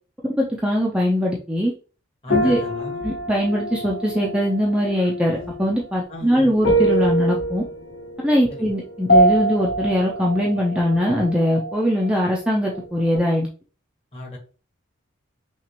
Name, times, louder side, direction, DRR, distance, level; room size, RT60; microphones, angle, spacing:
voice 1, 0.4-1.7 2.3-2.6 3.0-7.6 8.2-13.5, equal, 5° right, -3 dB, 0.6 m, -21 dB
voice 2, 2.2-3.0 6.1-6.5 8.5-8.7 14.1-14.4, right 1 dB, 30° left, -2 dB, 1.6 m, -35 dB
sound 1, 2.3-12.2 12.4-13.2, right 1 dB, 75° left, 2.0 m, -25 dB
5.8 x 2.5 x 3.0 m, 0.36 s
head